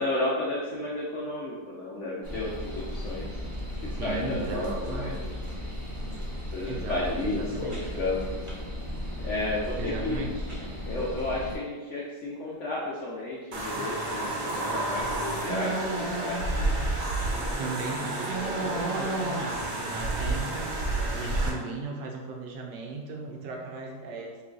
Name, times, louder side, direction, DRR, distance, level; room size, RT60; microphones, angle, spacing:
voice 1, 0.0-3.3 4.0-5.1 6.5-8.4 9.2-10.2 10.9-16.4, left 2 dB, 65° left, -5 dB, 0.7 m, -32 dB
sound 1, 2.2-11.6, left 1 dB, 30° right, 0.6 m, -35 dB
voice 2, 4.0-5.3 6.7-7.9 9.8-10.5 17.6-20.8 21.0-24.4, right 3 dB, 85° right, 1 dB, 1.3 m, -36 dB
sound 2, 13.5-21.5, right 2 dB, 60° right, 1.2 m, -29 dB
3.2 x 3.1 x 3.7 m, 1.4 s
omnidirectional pair, 1.8 m